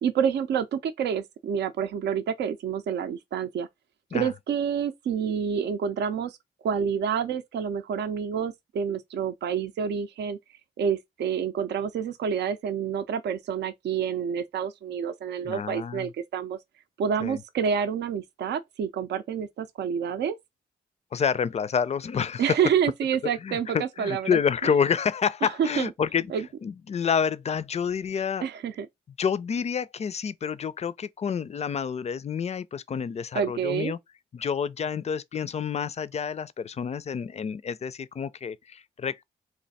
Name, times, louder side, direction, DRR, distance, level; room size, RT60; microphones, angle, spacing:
voice 1, 0.0-3.7 4.1-6.4 6.6-10.4 10.8-16.6 17.0-20.4 22.4-24.7 25.4-25.9 26.3-26.4 28.4-28.9 33.3-33.9, right 7 dB, 75° right, 0.5 m, -28 dB
voice 2, 15.4-16.1 17.2-17.4 21.1-22.6 23.4-26.3 26.6-28.5 29.2-34.0 34.3-39.2, left 7 dB, 40° left, 0.4 m, -28 dB
3.2 x 2.5 x 4.1 m
cardioid pair, 75°, 18 cm